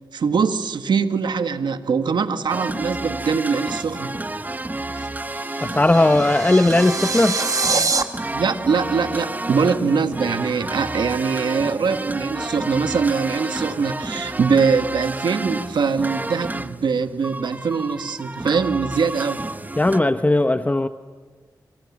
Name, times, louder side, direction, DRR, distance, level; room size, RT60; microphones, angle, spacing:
voice 1, 0.1-4.2 4.9-5.1 8.3-19.4, right 5 dB, 80° right, 1.7 m, -22 dB
sound 1, 2.5-20.0, right 2 dB, 20° right, 1.1 m, -30 dB
sound 2, 5.4-8.0, right 4 dB, 50° right, 2.2 m, -24 dB
voice 2, 5.6-7.4 19.8-20.9, left 2 dB, 20° left, 1.0 m, -17 dB
27.5 x 27.0 x 7.4 m
cardioid pair, 55°, 8 cm